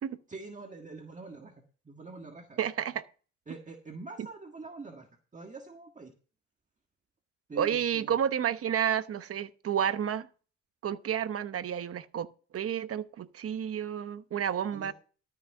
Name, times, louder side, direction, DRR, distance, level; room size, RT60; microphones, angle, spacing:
voice 1, 0.3-2.6 3.5-6.1 7.5-8.2 14.7-14.9, right 3 dB, 25° right, 1.7 m, -45 dB
voice 2, 2.6-3.1 7.6-10.3 10.8-12.3 12.5-14.9, right 9 dB, 50° right, 0.9 m, -30 dB
13.0 x 6.1 x 5.5 m
cardioid pair, 90°, 30 cm